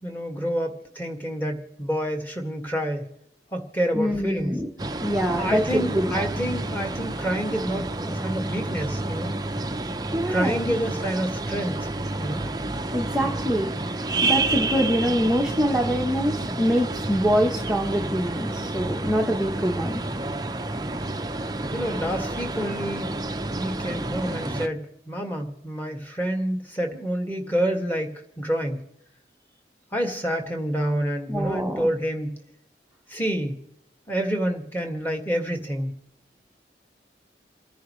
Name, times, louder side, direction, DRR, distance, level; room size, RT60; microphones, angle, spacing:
voice 1, 0.0-3.1 3.5-4.6 5.3-9.3 10.3-11.9 12.2-12.5 21.7-23.1 23.5-28.8 29.9-32.4 33.1-33.6 34.1-35.9, equal, 10° left, 3 dB, 1.9 m, -28 dB
voice 2, 3.9-4.7 5.0-6.3 10.1-10.7 12.9-20.0 31.3-31.9, equal, 5° right, -1 dB, 1.0 m, -25 dB
sound 1, 4.8-24.7, right 2 dB, 20° right, 0.7 m, -29 dB
28.5 x 10.0 x 3.2 m, 0.79 s
head